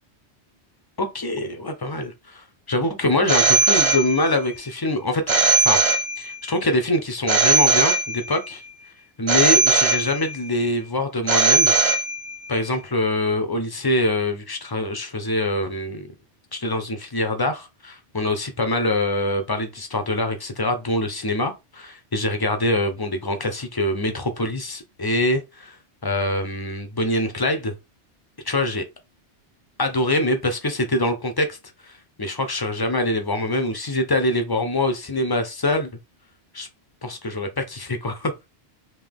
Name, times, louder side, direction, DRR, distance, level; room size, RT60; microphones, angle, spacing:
voice 1, 1.0-5.8 6.2-8.6 9.2-11.7 12.5-16.1 16.5-25.8 26.0-27.7 28.4-28.8 29.8-31.6 31.9-35.9 36.5-36.7 37.0-38.3, left 1 dB, 30° left, 0.5 m, -24 dB
Telephone, 3.3-4.5 5.3-6.5 7.3-8.5 9.3-10.5 11.3-12.5, right 3 dB, 40° right, 0.4 m, -19 dB
3.8 x 2.7 x 3.5 m
omnidirectional pair, 1.2 m